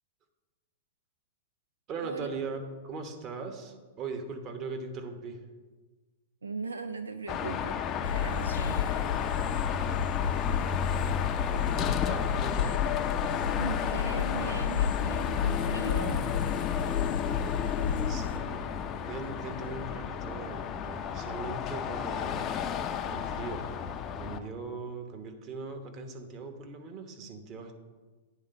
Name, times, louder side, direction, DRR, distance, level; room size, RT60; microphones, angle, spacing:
voice 1, 1.9-5.4 9.7-10.1 11.3-12.9 17.8-18.7 19.0-23.7 23.9-27.7, right 4 dB, 35° right, 6 dB, 1.1 m, -40 dB
voice 2, 6.4-7.8 8.1-8.9 13.5-16.3, right 4 dB, 85° right, 9 dB, 0.3 m, -38 dB
Car passing by / Traffic noise roadway noise / Engine, 7.3-24.4, left 8 dB, 30° left, 0.5 m, -32 dB
sound 1, 8.0-18.4, left 7 dB, 75° left, 0.9 m, -32 dB
9.6 x 3.7 x 5.2 m, 1.3 s
hypercardioid pair, 110°, 0 cm